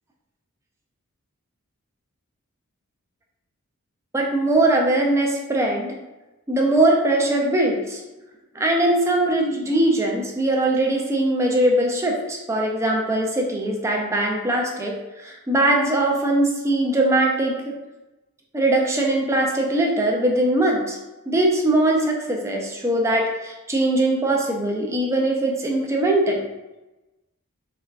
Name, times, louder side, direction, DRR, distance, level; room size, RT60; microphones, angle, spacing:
voice 1, 4.1-5.9 6.5-8.0 8.6-17.8 18.5-21.0 21.3-26.4, right 1 dB, 15° right, 0 dB, 0.3 m, -21 dB
3.2 x 2.2 x 2.4 m, 1.0 s
head